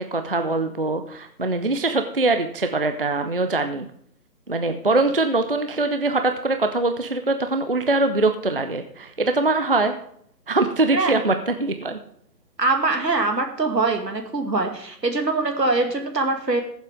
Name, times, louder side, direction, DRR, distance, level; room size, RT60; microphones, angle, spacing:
voice 1, 0.0-3.9 4.5-9.9 10.5-12.0, right 2 dB, 35° right, 7 dB, 0.5 m, -22 dB
voice 2, 12.6-16.6, right 3 dB, 75° right, 4 dB, 2.4 m, -23 dB
20.5 x 7.3 x 3.5 m, 0.67 s
figure-of-eight pair, 145°, 50 cm